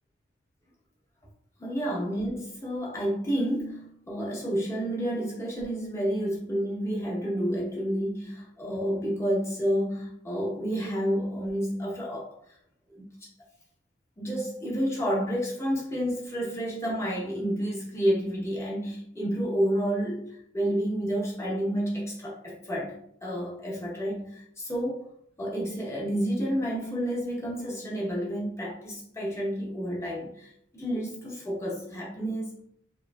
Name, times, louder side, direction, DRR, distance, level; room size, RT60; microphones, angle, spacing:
voice 1, 1.6-12.3 12.9-13.1 14.2-25.0 25.4-32.6, equal, 15° left, -4 dB, 0.7 m, -30 dB
2.9 x 2.5 x 2.2 m, 0.69 s
head